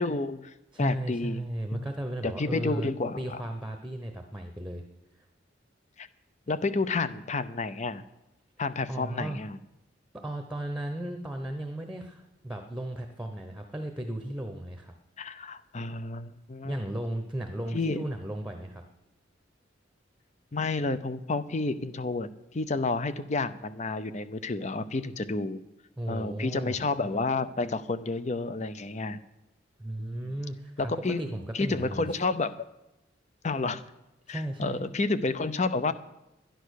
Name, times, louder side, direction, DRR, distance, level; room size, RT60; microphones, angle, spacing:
voice 1, 0.0-1.4 1.7-1.8 2.2-3.4 6.0-6.1 6.5-8.0 8.6-9.6 15.2-16.8 17.7-18.0 20.5-25.6 26.1-29.2 30.0-30.2 30.8-31.2 31.5-32.5 33.4-33.8 34.3-35.9, left 3 dB, 35° left, 13 dB, 0.7 m, -30 dB
voice 2, 0.7-2.9 3.2-4.8 8.9-9.4 10.1-14.9 16.6-18.8 26.0-26.8 29.8-30.9 31.2-32.2 34.3-34.8, right 1 dB, 5° right, 5 dB, 1.0 m, -35 dB
11.5 x 10.5 x 6.5 m, 0.94 s
head